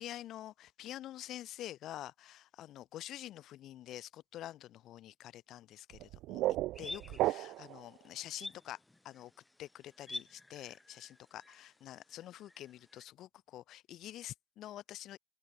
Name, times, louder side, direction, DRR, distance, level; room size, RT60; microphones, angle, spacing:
voice 1, 0.0-6.4 6.8-8.8 9.0-9.3 9.6-15.2, left 13 dB, 55° left, 0.5 m, -47 dB
sound 1, 5.9-7.8, right 16 dB, 65° right, 0.3 m, -34 dB
sound 2, 6.7-13.0, left 2 dB, 10° left, 1.1 m, -50 dB
open air
cardioid pair, 165°, 0 cm